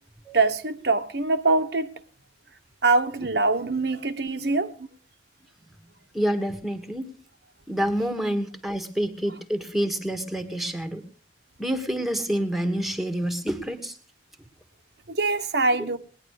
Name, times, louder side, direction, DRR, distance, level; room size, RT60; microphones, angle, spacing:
voice 1, 0.3-1.9 2.8-4.7 15.1-16.0, right 3 dB, 60° right, 1.2 m, -23 dB
voice 2, 6.1-7.1 7.7-11.0 11.6-14.0, equal, ahead, 1.6 m, -28 dB
20.0 x 10.5 x 6.5 m
head